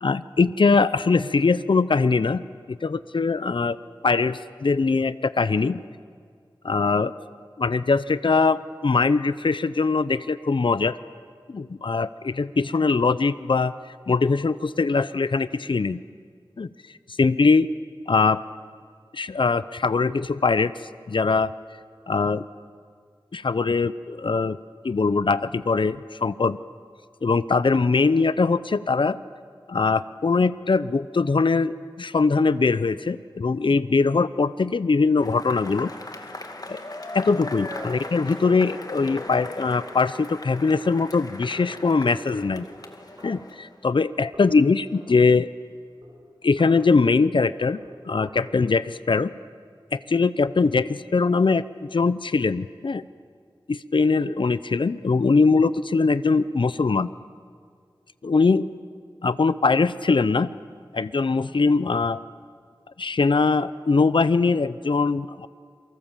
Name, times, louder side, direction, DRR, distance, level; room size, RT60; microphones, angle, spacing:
voice 1, 0.0-2.4 2.7-3.8 4.0-5.8 6.6-7.1 7.6-11.0 11.5-13.7 14.1-16.0 16.6-16.7 17.2-17.7 18.1-18.4 19.1-20.7 21.1-21.5 22.1-22.4 23.3-24.6 24.8-26.6 27.2-29.2 29.7-35.9 36.7-36.8 37.1-42.7 43.2-45.5 46.4-47.8 48.0-49.3 49.9-53.0 53.7-57.1 58.2-58.7 59.2-60.5 60.9-62.2 63.0-65.5, left 4 dB, 70° left, 15 dB, 0.6 m, -22 dB
Cheering / Applause / Crowd, 35.2-43.9, left 2 dB, 45° left, 2.3 m, -38 dB
sound 1, 37.7-44.1 44.3-48.4, equal, 50° right, 7.1 m, -48 dB
29.5 x 24.0 x 7.3 m, 2.1 s
wide cardioid pair, 65°, 9 cm